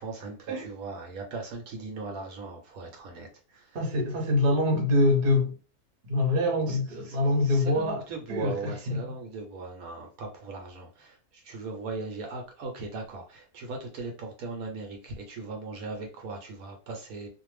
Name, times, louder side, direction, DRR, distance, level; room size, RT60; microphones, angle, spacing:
voice 1, 0.0-3.8 6.7-6.8 7.0-7.2 7.4-17.3, right 3 dB, 75° right, 1.0 m, -38 dB
voice 2, 3.7-5.5 6.1-8.0 8.3-9.0, left 2 dB, 45° right, 0.8 m, -25 dB
2.5 x 2.1 x 3.2 m
omnidirectional pair, 1.6 m